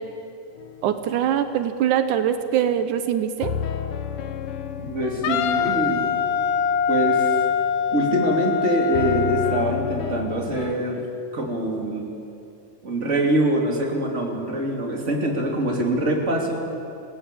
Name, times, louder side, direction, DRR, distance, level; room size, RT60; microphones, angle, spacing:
sound 1, 0.6-1.2 3.4-8.2 8.9-10.8, left 9 dB, 65° left, 1.4 m, -33 dB
voice 1, 0.8-3.5, right 9 dB, 85° right, 9 dB, 2.5 m, -23 dB
voice 2, 4.8-6.1 6.9-7.3 7.9-11.1 11.3-12.1 12.8-16.6, right 1 dB, 25° right, 1 dB, 3.1 m, -24 dB
Wind instrument woodwind instrument, 5.2-9.7, left 7 dB, 85° left, 2.6 m, -23 dB
28.0 x 18.5 x 8.5 m, 2.6 s
omnidirectional pair, 3.5 m